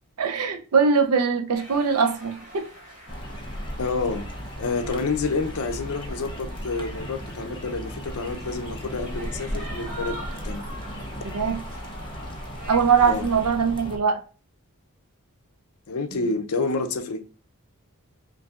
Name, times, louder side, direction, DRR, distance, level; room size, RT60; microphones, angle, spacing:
voice 1, 0.2-2.6 11.2-11.6 12.7-14.2, right 5 dB, 85° right, 0.6 m, -22 dB
sound 1, 1.5-13.5, right 1 dB, 35° right, 1.3 m, -44 dB
sound 2, 3.1-14.0, equal, 20° left, 0.6 m, -36 dB
voice 2, 3.8-4.3 4.6-10.2 10.4-10.7 13.0-13.3 15.9-17.2, left 3 dB, 75° left, 0.5 m, -28 dB
5.3 x 2.6 x 2.4 m
head